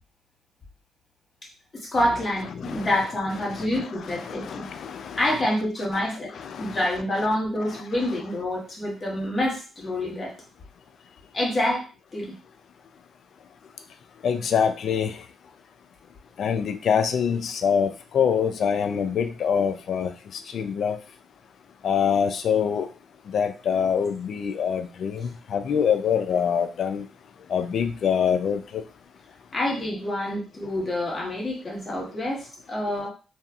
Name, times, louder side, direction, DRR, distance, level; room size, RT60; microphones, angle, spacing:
voice 1, 1.7-4.7 5.2-6.3 6.6-10.3 11.3-11.9 12.1-12.3 29.5-33.1, left 1 dB, 35° left, -2 dB, 1.3 m, -27 dB
voice 2, 2.6-2.9 3.5-3.9 4.2-5.2 6.3-6.8 14.2-15.2 16.4-20.1 20.5-21.0 21.8-22.9 23.3-27.0 27.5-28.8, left 7 dB, 65° left, 8 dB, 0.3 m, -25 dB
2.7 x 2.4 x 2.3 m, 0.36 s
supercardioid pair, 65°, 0 cm